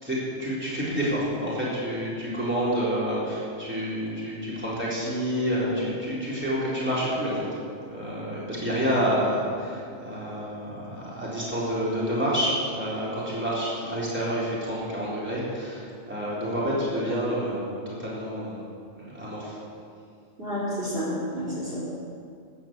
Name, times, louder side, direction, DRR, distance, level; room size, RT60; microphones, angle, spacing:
voice 1, 0.0-7.5 7.9-18.6 19.0-19.6, equal, 10° right, -8 dB, 3.9 m, -28 dB
voice 2, 20.4-21.8, equal, 45° right, -7 dB, 4.0 m, -30 dB
13.5 x 9.7 x 7.5 m, 2.4 s
omnidirectional pair, 1.4 m